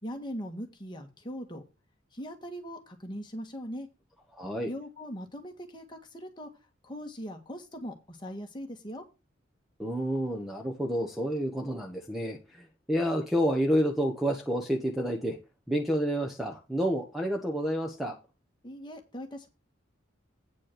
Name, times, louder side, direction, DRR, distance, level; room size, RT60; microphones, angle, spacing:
voice 1, 0.0-1.6 2.1-3.9 4.7-6.5 6.8-9.0 18.6-19.5, equal, 25° left, 1.7 m, -40 dB
voice 2, 4.3-4.7 9.8-15.4 15.7-18.2, equal, ahead, 1.0 m, -29 dB
9.0 x 5.3 x 6.5 m
head